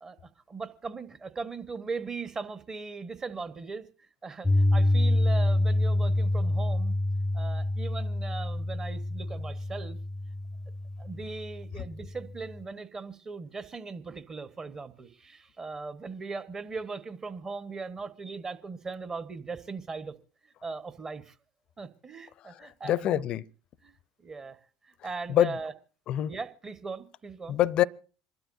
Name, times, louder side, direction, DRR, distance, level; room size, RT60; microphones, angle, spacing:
voice 1, 0.0-3.9 4.2-6.9 7.3-10.0 11.0-20.1 20.4-21.3 21.8-23.2 23.8-24.0 24.2-24.6 24.8-25.7 26.3-27.6, right 4 dB, 30° right, 1.3 m, -39 dB
Piano, 4.4-12.5, left 1 dB, 5° left, 0.6 m, -27 dB
voice 2, 22.4-23.4 25.3-25.6 26.1-26.3 27.5-27.8, left 12 dB, 50° left, 0.5 m, -26 dB
26.5 x 12.5 x 2.7 m
hypercardioid pair, 70°, 2 cm